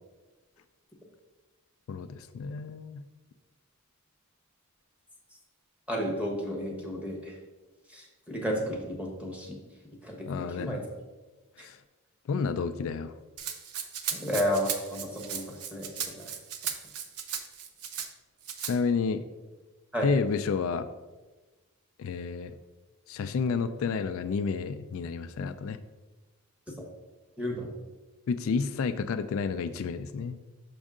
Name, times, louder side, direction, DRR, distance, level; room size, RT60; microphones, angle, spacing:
voice 1, 1.9-3.0 10.3-10.8 11.6-11.8 12.3-13.1 18.6-19.2 20.0-20.9 22.0-22.6 23.1-25.8 28.3-30.4, left 5 dB, 65° left, 10 dB, 0.3 m, -30 dB
voice 2, 5.9-7.3 7.9-9.6 10.0-10.8 11.6-11.7 14.1-16.3 19.9-20.1 27.4-27.7, equal, 5° right, 0 dB, 1.0 m, -32 dB
Rattle (instrument), 13.4-18.1 18.4-18.7, right 8 dB, 85° right, 0.6 m, -36 dB
6.2 x 5.3 x 3.6 m, 1.2 s
head